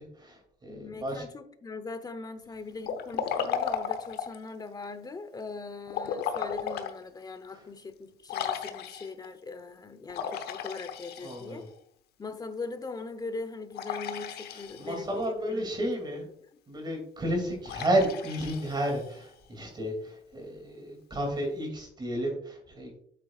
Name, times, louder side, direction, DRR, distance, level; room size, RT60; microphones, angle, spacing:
voice 1, 0.0-1.2 7.5-7.7 11.2-11.7 14.5-16.3 16.7-23.0, right 1 dB, 25° right, 2 dB, 2.6 m, -32 dB
voice 2, 0.7-11.6 12.2-15.6, left 3 dB, 25° left, 10 dB, 0.9 m, -40 dB
Liquid, 2.8-4.4 5.9-7.0 7.4-7.5 8.3-9.3 10.1-11.7 13.7-15.1 17.6-19.3, left 8 dB, 75° left, 0.9 m, -35 dB
8.6 x 7.4 x 2.4 m, 0.66 s
cardioid pair, 110°, 17 cm